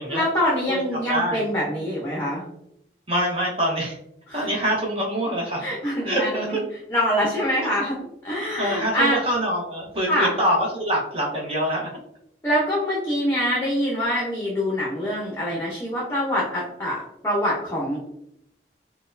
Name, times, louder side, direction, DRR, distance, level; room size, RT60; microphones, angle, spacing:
voice 1, 0.1-2.4 4.3-4.5 5.6-6.6 6.9-8.0 8.2-9.2 10.1-10.3 12.4-18.0, equal, 15° left, -5 dB, 0.7 m, -24 dB
voice 2, 0.7-1.4 3.1-4.0 4.3-5.7 6.0-6.5 8.6-11.9, equal, 30° right, -2 dB, 0.9 m, -25 dB
4.2 x 2.2 x 2.5 m, 0.76 s
head